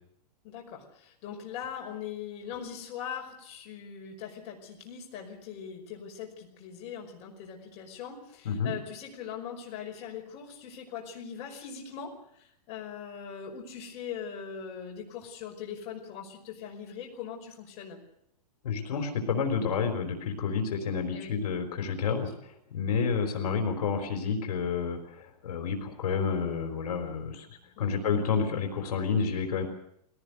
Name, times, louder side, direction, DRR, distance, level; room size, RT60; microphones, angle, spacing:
voice 1, 0.4-18.0 21.1-21.3 22.1-22.3 27.8-28.0, left 8 dB, 35° left, 1 dB, 5.4 m, -41 dB
voice 2, 18.6-29.6, left 5 dB, 75° left, 5 dB, 4.2 m, -30 dB
21.5 x 18.0 x 8.2 m, 0.73 s
hypercardioid pair, 150°, 20 cm